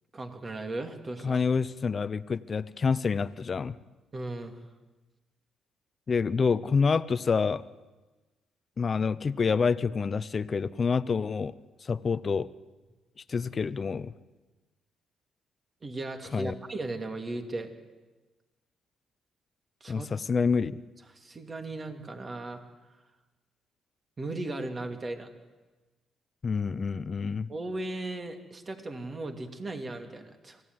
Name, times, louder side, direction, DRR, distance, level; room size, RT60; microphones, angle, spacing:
voice 1, 0.1-1.4 4.1-4.5 15.8-17.7 19.8-20.1 20.3-20.5 21.1-22.6 24.2-25.3 27.5-30.6, right 2 dB, 30° right, 6 dB, 2.6 m, -37 dB
voice 2, 1.2-3.8 6.1-7.6 8.8-11.5 11.8-12.5 13.3-14.1 16.3-16.5 19.9-20.8 26.4-27.5, left 5 dB, 40° left, 16 dB, 0.7 m, -27 dB
24.5 x 16.0 x 9.6 m, 1.2 s
cardioid pair, 90°, 0 cm